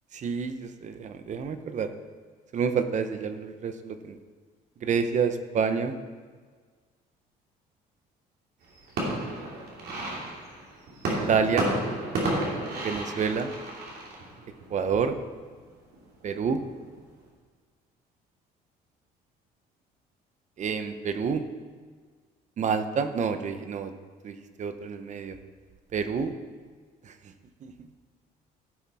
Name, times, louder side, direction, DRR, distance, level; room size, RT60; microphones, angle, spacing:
voice 1, 0.1-1.9 2.5-4.2 4.8-5.9 11.1-11.7 12.8-13.5 14.7-15.2 16.2-16.6 20.6-21.5 22.6-23.9 24.2-25.4 25.9-26.3 27.0-27.3 27.6-27.7, right 6 dB, 45° right, 9 dB, 0.8 m, -28 dB
sound 1, 8.6-15.2 15.6-16.2 16.6-17.2, right 1 dB, 65° right, 2.8 m, -32 dB
15.5 x 5.8 x 4.2 m, 1.5 s
cardioid pair, 110°, 17 cm